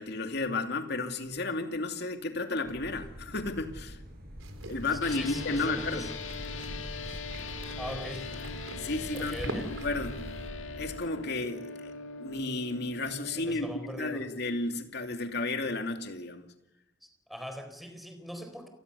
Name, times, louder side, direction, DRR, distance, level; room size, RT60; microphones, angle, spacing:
voice 1, 0.0-4.0 4.7-6.1 8.8-9.4 9.7-10.1 10.8-11.7 12.2-16.5, left 3 dB, 55° left, 6 dB, 2.7 m, -33 dB
sound 1, 2.6-10.9, equal, 50° right, 6.3 m, -45 dB
sound 2, 4.4-10.5, right 1 dB, 85° right, 4.1 m, -43 dB
voice 2, 4.9-6.1 7.8-8.4 9.1-9.7 13.4-14.3 17.0-18.7, equal, ahead, 7 dB, 4.2 m, -41 dB
sound 3, 5.0-14.5, left 4 dB, 75° left, 1.9 m, -41 dB
28.0 x 20.0 x 7.0 m, 0.91 s
head